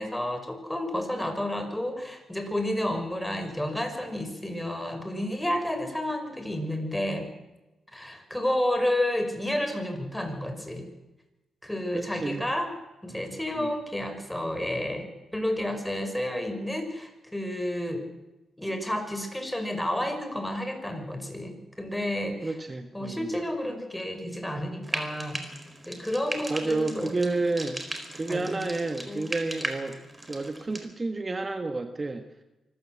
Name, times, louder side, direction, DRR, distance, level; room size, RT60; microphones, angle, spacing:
voice 1, 0.0-7.3 7.9-10.9 11.6-12.7 13.0-18.1 18.6-22.5 22.9-25.4 25.9-27.4 28.3-28.7 29.1-29.3, left 1 dB, 5° left, 7 dB, 5.4 m, -31 dB
voice 2, 11.9-12.4 13.1-13.2 13.5-13.7 22.4-23.3 26.5-27.8 28.1-30.0 30.3-32.3, right 3 dB, 30° right, 7 dB, 1.6 m, -30 dB
Frying (food), 24.8-30.9, right 1 dB, 10° right, 4.3 m, -38 dB
24.5 x 14.5 x 7.7 m, 1.0 s
supercardioid pair, 55°, 0 cm